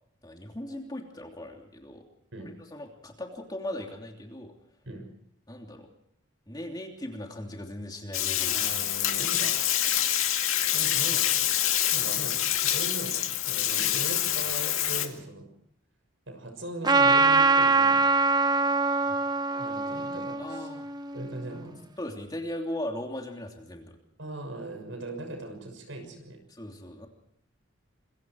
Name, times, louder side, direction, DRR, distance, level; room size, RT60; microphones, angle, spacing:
voice 1, 0.2-2.0 2.4-4.5 5.5-5.9 6.5-8.6 19.0-19.1 20.4-20.9 22.0-24.0 26.5-27.1, left 1 dB, 20° left, 2 dB, 3.1 m, -38 dB
Bathtub (filling or washing), 8.1-15.1, left 12 dB, 90° left, 2.2 m, -26 dB
voice 2, 8.4-9.6 9.9-10.0 10.7-11.5 11.9-15.5 16.3-18.1 19.6-20.7 21.1-21.8 24.2-26.4, right 2 dB, 70° right, 6 dB, 6.5 m, -39 dB
Trumpet, 16.8-21.5, right 3 dB, 20° right, 0.8 m, -23 dB
27.0 x 23.0 x 4.7 m, 0.71 s
head